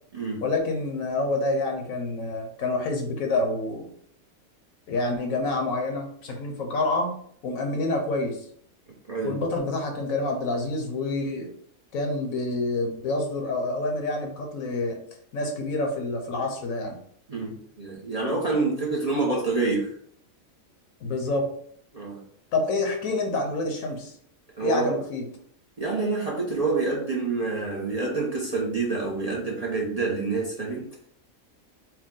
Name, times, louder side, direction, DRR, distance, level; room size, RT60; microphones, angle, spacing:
voice 1, 0.4-3.9 4.9-7.2 7.4-8.5 9.2-11.5 11.9-15.0 15.3-17.0 21.0-21.5 22.5-24.2 24.6-25.3, left 2 dB, 75° left, 3 dB, 1.3 m, -27 dB
voice 2, 9.1-9.4 17.3-19.9 21.9-22.2 24.6-25.0 25.8-30.9, right 3 dB, 35° right, -3 dB, 0.7 m, -27 dB
4.6 x 2.2 x 3.7 m, 0.62 s
omnidirectional pair, 1.5 m